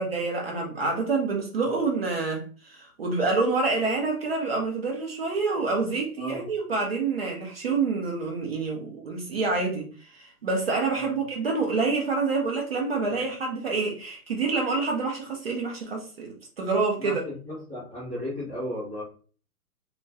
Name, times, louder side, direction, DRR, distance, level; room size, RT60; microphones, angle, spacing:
voice 1, 0.0-17.2, right 3 dB, 40° right, 0.5 m, -27 dB
voice 2, 6.2-6.5 10.9-11.1 17.0-19.0, left 1 dB, 5° left, 0.6 m, -35 dB
2.2 x 2.2 x 2.6 m
hypercardioid pair, 155°, 46 cm